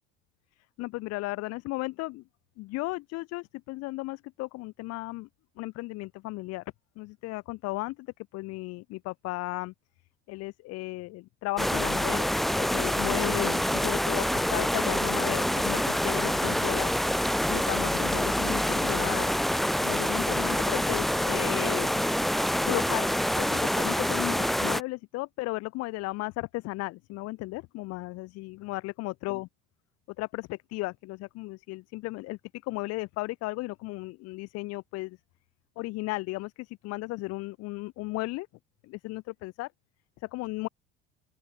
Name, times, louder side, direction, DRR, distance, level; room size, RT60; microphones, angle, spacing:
voice 1, 0.8-2.2 2.6-5.3 5.6-6.6 7.0-8.1 8.3-9.7 10.3-16.9 17.5-19.3 19.8-22.0 22.6-23.1 23.4-29.5 30.2-35.2 35.8-38.5 38.9-39.7 40.2-40.7, left 21 dB, 55° left, 3.8 m, -35 dB
sound 1, 11.6-24.8, equal, ahead, 0.3 m, -26 dB
open air
figure-of-eight pair, 60°, 30 cm